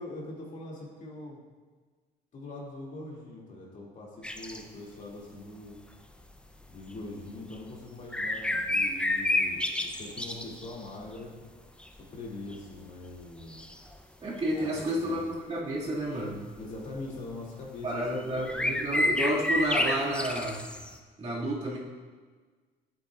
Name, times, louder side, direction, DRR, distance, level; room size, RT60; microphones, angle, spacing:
voice 1, 0.0-1.4 2.3-5.8 6.7-11.3 12.0-13.6 14.6-14.7 15.0-15.2 16.6-18.7, left 2 dB, 50° left, -3 dB, 2.5 m, -42 dB
sound 1, 4.2-4.6 6.6-6.7 7.5-7.6 8.1-10.9 11.6-12.0 12.5-12.6 13.5-13.9 14.6-14.9 16.8-17.0 18.1-18.2 18.4-21.0, left 1 dB, 5° left, 0.6 m, -30 dB
voice 2, 14.2-16.5 17.8-20.7 21.2-21.8, right 1 dB, 40° right, -5 dB, 2.1 m, -30 dB
11.5 x 8.6 x 2.4 m, 1.5 s
cardioid pair, 110°, 17 cm